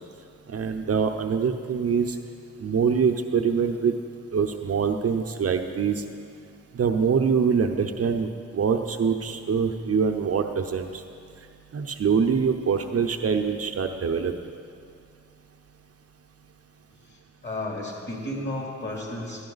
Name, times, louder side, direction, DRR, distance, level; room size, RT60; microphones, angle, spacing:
voice 1, 0.5-2.2 2.6-3.9 4.3-6.0 6.7-11.0 11.7-14.3, right 6 dB, 55° right, 5 dB, 0.6 m, -24 dB
voice 2, 17.0-19.4, left 1 dB, 35° left, -2 dB, 2.8 m, -33 dB
13.0 x 10.0 x 4.0 m, 2.3 s
cardioid pair, 65°, 29 cm